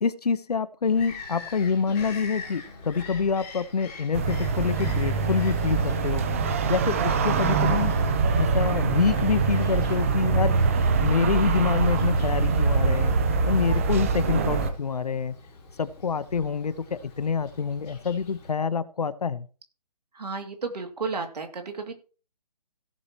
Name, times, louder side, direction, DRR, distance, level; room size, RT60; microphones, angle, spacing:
voice 1, 0.0-6.2 6.7-7.9 8.4-10.6 11.0-13.2 13.5-15.3 15.8-19.5, left 6 dB, 70° left, 15 dB, 1.0 m, -26 dB
Bird vocalization bird call bird song, 0.8-18.5, left 4 dB, 15° left, 2.7 m, -45 dB
sound 1, 4.1-14.7, right 4 dB, 20° right, 0.8 m, -24 dB
voice 2, 20.1-22.0, right 4 dB, 75° right, 5 dB, 2.6 m, -33 dB
17.0 x 7.8 x 3.0 m, 0.37 s
hypercardioid pair, 165°, 21 cm